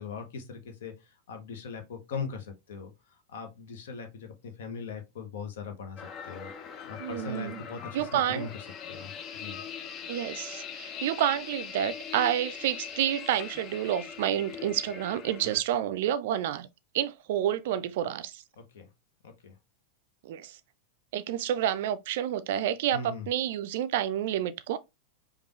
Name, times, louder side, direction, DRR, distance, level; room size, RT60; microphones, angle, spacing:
voice 1, 0.0-8.5 8.9-9.6 15.4-15.5 18.6-18.9 19.2-19.6 22.9-23.3, left 5 dB, 60° left, 1.0 m, -40 dB
sound 1, 6.0-15.6, left 7 dB, 30° left, 0.6 m, -41 dB
voice 2, 7.0-7.6 7.9-8.5 10.1-16.7 16.9-18.4 20.2-20.6 21.1-24.8, right 11 dB, 55° right, 0.4 m, -29 dB
5.1 x 2.4 x 3.1 m
figure-of-eight pair, 90°, 0 cm